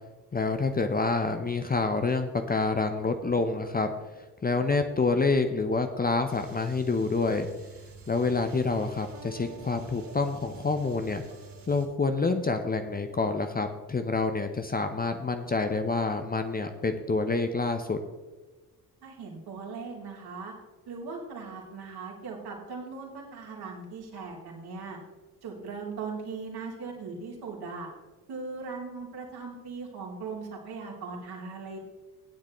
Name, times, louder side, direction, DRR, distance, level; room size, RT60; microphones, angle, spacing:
voice 1, 0.3-3.9 4.4-7.5 8.1-11.2 11.7-18.0, left 3 dB, 20° left, 7 dB, 0.8 m, -27 dB
sound 1, 6.3-11.9, right 3 dB, 35° right, 2.9 m, -47 dB
voice 2, 19.0-20.5 20.9-25.0 25.4-27.9 28.3-31.8, right 4 dB, 55° right, -1 dB, 3.0 m, -39 dB
15.5 x 9.8 x 3.1 m, 1.3 s
figure-of-eight pair, 45°, 47 cm